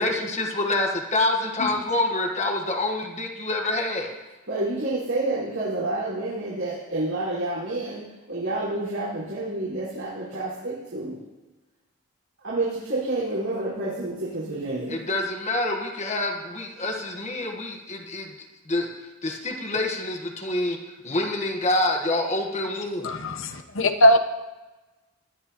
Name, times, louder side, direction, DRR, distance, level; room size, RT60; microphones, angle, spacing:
voice 1, 0.0-4.1 14.9-18.3 18.7-18.9 19.2-20.8 21.0-23.1, left 2 dB, 30° left, 2 dB, 1.3 m, -26 dB
voice 2, 4.5-11.2 12.4-15.0, right 2 dB, 75° right, -10 dB, 4.8 m, -29 dB
voice 3, 23.0-24.2, equal, 60° left, 6 dB, 1.0 m, -20 dB
20.0 x 12.5 x 3.0 m, 1.1 s
head